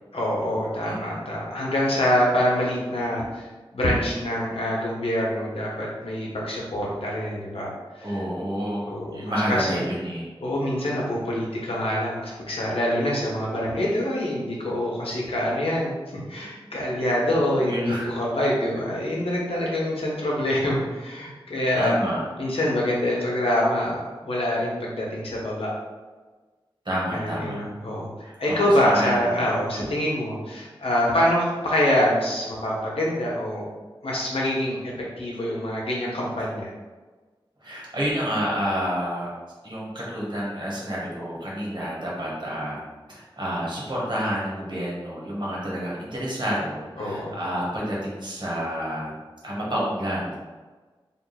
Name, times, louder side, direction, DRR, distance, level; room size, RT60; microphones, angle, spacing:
voice 1, 0.1-8.2 8.9-9.8 10.4-22.0 22.4-25.7 27.1-28.1 28.4-33.7 34.0-34.8 35.2-36.7 47.0-47.4, left 1 dB, 85° left, -4 dB, 1.0 m, -25 dB
voice 2, 0.8-1.2 8.0-10.3 17.6-18.1 21.8-22.2 26.8-27.6 28.2-29.9 35.5-35.6 37.6-39.3 39.6-42.8 43.1-49.1 49.4-50.5, equal, 55° right, -5 dB, 1.5 m, -29 dB
3.7 x 2.3 x 4.1 m, 1.3 s
cardioid pair, 45°, 9 cm